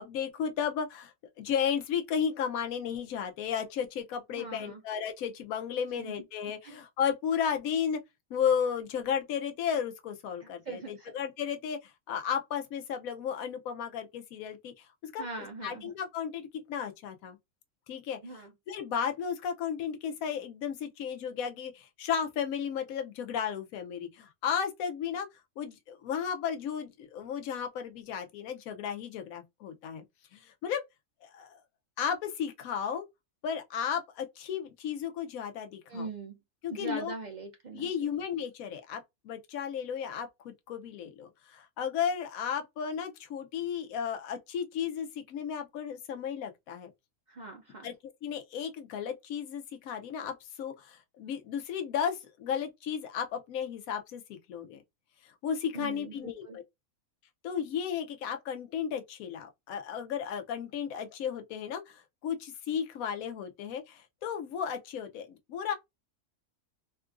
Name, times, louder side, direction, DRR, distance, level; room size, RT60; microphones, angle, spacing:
voice 1, 0.0-8.0 8.3-17.4 17.9-25.3 25.6-30.0 30.3-30.8 31.2-31.6 32.0-33.1 33.4-36.1 36.6-37.1 37.7-46.9 47.8-47.9 48.2-54.8 55.4-56.6 57.4-65.7, left 8 dB, 80° left, 1.0 m, -34 dB
voice 2, 4.3-4.8 6.0-6.1 6.6-6.8 10.4-11.1 15.2-15.9 18.2-18.5 35.9-36.4 36.7-38.0 47.3-47.9 55.7-56.6, right 3 dB, 75° right, 0.4 m, -41 dB
3.7 x 2.4 x 2.4 m
omnidirectional pair, 1.5 m